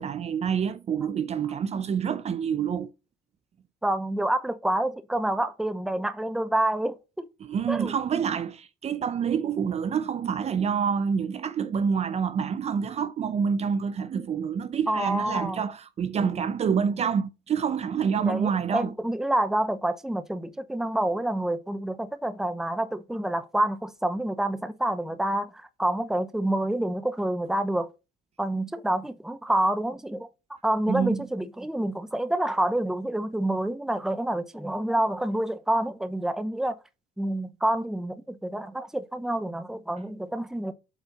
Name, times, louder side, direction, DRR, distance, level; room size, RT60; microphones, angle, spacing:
voice 1, 0.0-2.9 7.4-18.9 30.9-31.2, right 7 dB, 40° right, 0.5 m, -27 dB
voice 2, 3.8-7.3 7.7-7.9 14.9-15.6 18.2-27.9 28.4-30.3 30.6-36.8 37.2-40.7, right 1 dB, 5° right, 0.7 m, -28 dB
8.0 x 4.3 x 4.1 m
cardioid pair, 110°, 17 cm